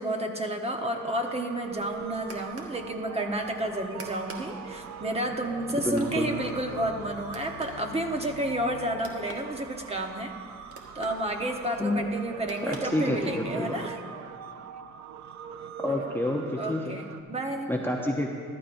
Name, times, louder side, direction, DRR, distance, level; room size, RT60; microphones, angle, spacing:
voice 1, 0.0-10.3 10.9-14.0 15.9-16.0 16.6-17.7, right 1 dB, 20° right, 3 dB, 1.1 m, -31 dB
sound 1, 0.7-17.2, right 7 dB, 65° right, 0.6 m, -43 dB
sound 2, 1.6-13.5, right 3 dB, 50° right, 1.4 m, -49 dB
sound 3, 5.2-10.2, left 9 dB, 80° left, 0.6 m, -47 dB
voice 2, 5.8-6.3 11.8-12.1 12.7-13.8 15.8-17.0 17.7-18.3, left 1 dB, 5° left, 0 dB, 0.8 m, -28 dB
14.5 x 12.0 x 2.6 m, 2.1 s
cardioid pair, 90°, 30 cm